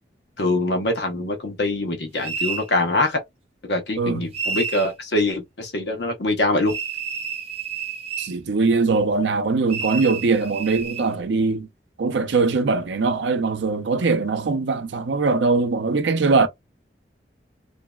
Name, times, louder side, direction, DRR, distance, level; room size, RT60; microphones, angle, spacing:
voice 1, 0.4-3.2 3.7-6.8, left 2 dB, 70° left, 0.9 m, -23 dB
sound 1, 2.2-2.7 4.3-4.9 6.7-8.4 9.7-11.1, right 6 dB, 35° right, 0.8 m, -30 dB
voice 2, 4.0-4.3 8.2-11.7 12.0-16.5, right 4 dB, 80° right, 0.5 m, -21 dB
3.1 x 2.6 x 2.2 m
head